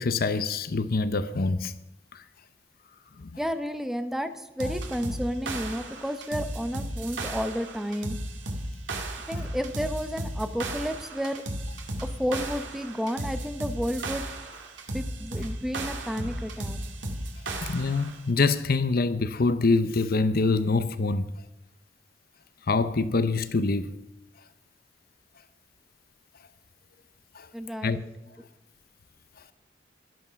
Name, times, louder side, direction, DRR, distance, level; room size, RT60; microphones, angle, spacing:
voice 1, 0.0-1.7 2.1-2.2 17.6-21.3 22.7-23.9 27.4-27.5 27.8-28.0, left 3 dB, 55° left, 0.7 m, -25 dB
voice 2, 3.4-8.2 9.3-11.4 12.0-14.3 14.9-16.8 27.5-28.0, equal, ahead, 0.8 m, -31 dB
sound 1, 4.6-18.2, right 1 dB, 90° right, 2.2 m, -35 dB
12.5 x 11.5 x 5.8 m
head